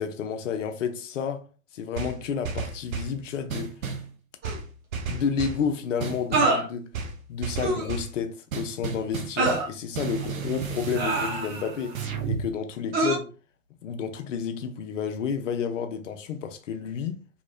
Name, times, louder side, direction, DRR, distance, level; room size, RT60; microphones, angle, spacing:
voice 1, 0.0-1.4 1.7-3.7 5.1-6.8 7.3-12.0 12.2-13.3 13.8-17.2, left 7 dB, 55° left, 0.7 m, -30 dB
sound 1, 2.0-3.2 3.5-4.1 4.4-5.6 6.0-6.6 6.9-8.1 8.5-9.7 9.9-12.5, right 5 dB, 65° right, 0.8 m, -33 dB
sound 2, 4.4-4.6 6.3-6.7 7.6-7.9 9.4-9.7 10.9-11.7 12.9-13.2, right 3 dB, 20° right, 0.8 m, -25 dB
2.9 x 2.8 x 2.4 m
figure-of-eight pair, 95°, 44 cm